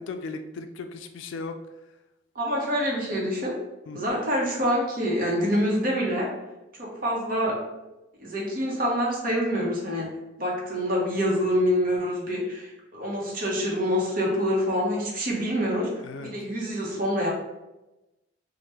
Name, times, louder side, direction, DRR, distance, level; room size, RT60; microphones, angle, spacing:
voice 1, 0.0-1.6 3.9-4.0 16.0-16.3, left 3 dB, 80° left, 7 dB, 0.3 m, -36 dB
voice 2, 2.3-3.5 3.9-6.3 6.8-7.6 8.2-10.1 10.4-15.9 16.2-17.3, equal, 45° right, -2 dB, 0.8 m, -26 dB
3.3 x 2.1 x 2.8 m, 1.0 s
head